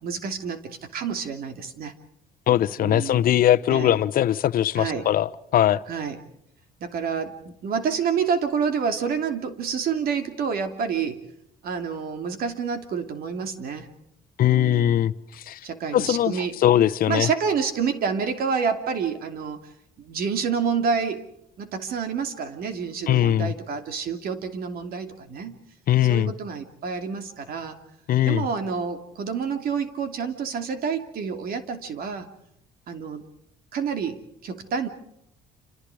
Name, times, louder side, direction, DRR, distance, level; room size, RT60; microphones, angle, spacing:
voice 1, 0.0-1.9 2.8-3.3 3.7-4.0 4.7-5.1 5.9-6.2 6.8-11.2 11.6-13.9 14.4-15.1 15.6-16.6 17.1-19.6 20.0-21.2 21.6-25.6 26.1-27.8 28.2-32.3 32.9-33.2 33.7-34.9, right 6 dB, 60° right, 2.8 m, -28 dB
voice 2, 2.5-5.8 14.4-15.1 15.5-15.6 15.9-16.3 16.6-17.3 23.1-23.5 25.9-26.3 28.1-28.4, left 12 dB, 60° left, 0.9 m, -20 dB
28.0 x 27.0 x 4.9 m
cardioid pair, 110°, 17 cm